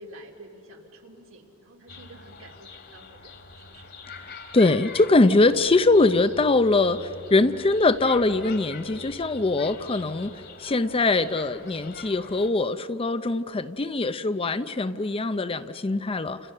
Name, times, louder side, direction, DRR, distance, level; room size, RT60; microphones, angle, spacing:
voice 1, 0.0-4.0 4.3-4.6, right 1 dB, 70° right, 1 dB, 3.0 m, -49 dB
sound 1, 1.9-12.5, left 4 dB, 55° left, 2.3 m, -44 dB
voice 2, 4.5-10.3 10.6-16.4, left 2 dB, 25° left, 12 dB, 0.6 m, -22 dB
29.5 x 28.5 x 6.6 m, 3.0 s
head